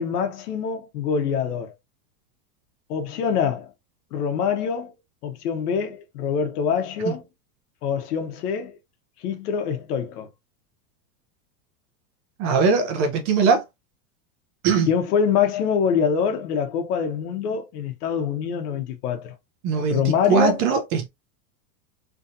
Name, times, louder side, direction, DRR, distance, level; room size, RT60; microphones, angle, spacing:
voice 1, 0.0-1.7 2.9-3.7 4.1-4.9 5.2-7.2 7.8-8.8 9.2-10.3 14.9-19.3 19.9-20.6, left 7 dB, 90° left, 1.1 m, -25 dB
voice 2, 12.4-13.6 14.6-14.9 19.6-21.1, right 5 dB, 40° right, 0.7 m, -21 dB
3.2 x 2.7 x 2.6 m
supercardioid pair, 155°, 45 cm